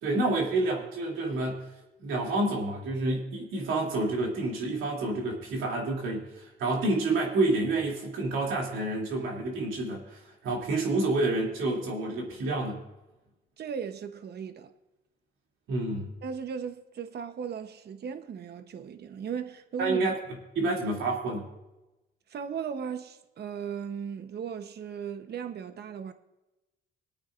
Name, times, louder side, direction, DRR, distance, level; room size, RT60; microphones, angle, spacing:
voice 1, 0.0-1.7 2.0-12.8 15.7-16.1 19.8-20.1 20.5-21.5, right 2 dB, 85° right, 2.8 m, -29 dB
voice 2, 13.6-14.7 16.2-20.0 22.3-26.1, right 7 dB, 55° right, 0.9 m, -37 dB
23.5 x 8.9 x 2.5 m
cardioid pair, 90°, 20 cm